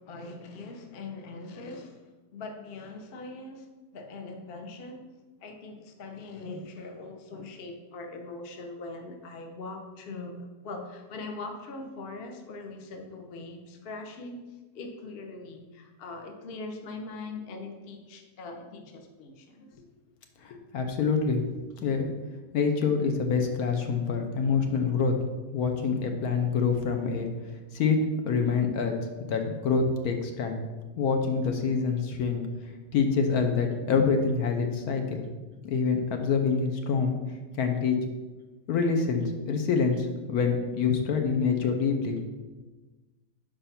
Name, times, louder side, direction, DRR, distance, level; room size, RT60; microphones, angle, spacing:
voice 1, 0.0-3.7 3.9-5.1 5.4-19.8, left 3 dB, 50° left, 4 dB, 0.8 m, -41 dB
voice 2, 20.4-21.4 21.8-22.1 22.5-25.1 25.5-27.3 27.7-28.0 28.2-29.0 29.3-30.6 31.0-32.5 32.9-35.2 35.6-37.2 37.6-38.0 38.7-42.2, left 5 dB, 70° left, 4 dB, 1.2 m, -26 dB
5.0 x 4.6 x 5.8 m, 1.2 s
omnidirectional pair, 1.7 m